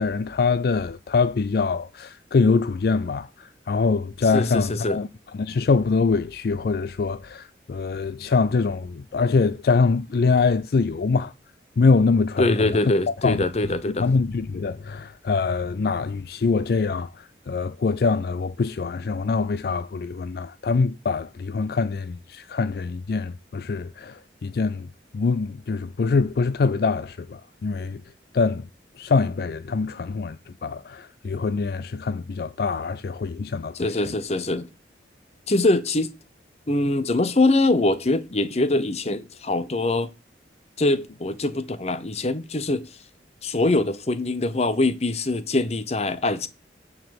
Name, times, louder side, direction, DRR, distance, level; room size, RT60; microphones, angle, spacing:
voice 1, 0.0-5.1 5.4-11.3 11.8-12.8 13.2-13.4 14.0-28.0 28.3-28.7 29.0-34.1, left 4 dB, 55° left, 0.4 m, -24 dB
voice 2, 4.3-5.0 12.4-14.1 33.7-34.7 35.5-36.1 36.7-40.1 40.8-42.9 43.4-46.5, left 2 dB, 35° left, 0.8 m, -23 dB
9.2 x 4.7 x 5.8 m
head